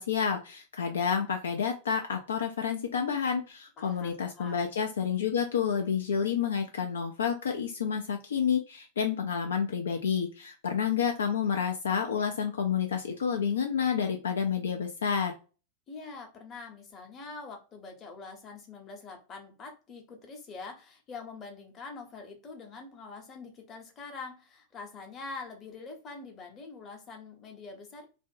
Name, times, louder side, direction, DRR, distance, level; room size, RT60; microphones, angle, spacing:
voice 1, 0.0-15.3, left 7 dB, 65° left, 0.3 m, -29 dB
voice 2, 3.8-4.6 15.9-28.1, left 4 dB, 30° left, 0.8 m, -44 dB
2.5 x 2.1 x 2.4 m
figure-of-eight pair, 90°, 0 cm